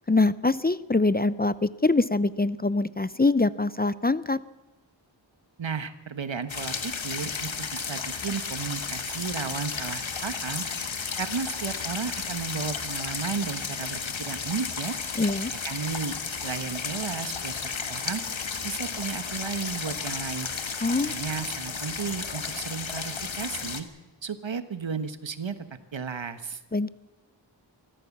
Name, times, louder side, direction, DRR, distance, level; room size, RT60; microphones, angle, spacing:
voice 1, 0.1-4.4 15.2-15.5 20.8-21.1 26.7-26.9, left 3 dB, 20° left, 16 dB, 0.6 m, -24 dB
voice 2, 5.6-10.6 11.2-14.9 15.6-17.5 17.9-18.2 18.6-20.5 21.1-23.9 24.2-25.5 25.9-26.6, right 6 dB, 75° right, 11 dB, 1.3 m, -34 dB
sound 1, 6.5-23.8, left 5 dB, 80° left, 1.6 m, -33 dB
24.0 x 15.0 x 7.3 m, 1.1 s
wide cardioid pair, 60°, 46 cm